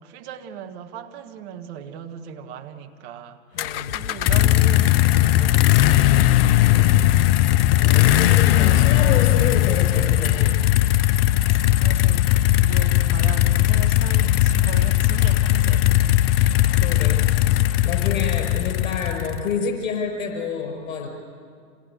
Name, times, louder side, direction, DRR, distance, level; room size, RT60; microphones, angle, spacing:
voice 1, 0.0-3.4 3.9-6.4 7.9-8.3 11.3-16.2, right 8 dB, 45° right, 5 dB, 1.8 m, -39 dB
voice 2, 3.5-4.0 6.7-10.7 16.4-17.2 17.5-21.1, left 6 dB, 60° left, 3 dB, 5.7 m, -29 dB
sound 1, 3.6-19.5, left 14 dB, 40° left, 0.6 m, -18 dB
26.5 x 18.0 x 8.3 m, 2.1 s
hypercardioid pair, 115°, 44 cm